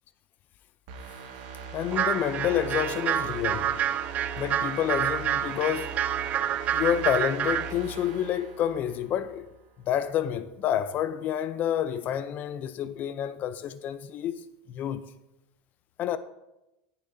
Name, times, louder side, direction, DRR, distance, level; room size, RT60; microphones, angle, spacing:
sound 1, 0.9-9.5 9.9-10.0, right 4 dB, 65° right, 1.7 m, -41 dB
voice 1, 1.7-3.8 4.4-5.9 6.7-9.5 9.9-14.4 14.7-15.1 16.0-16.2, left 10 dB, 40° left, 0.4 m, -28 dB
sound 2, 1.9-7.7, right 10 dB, 35° right, 0.4 m, -28 dB
19.0 x 6.9 x 2.6 m
supercardioid pair, 125°, 5 cm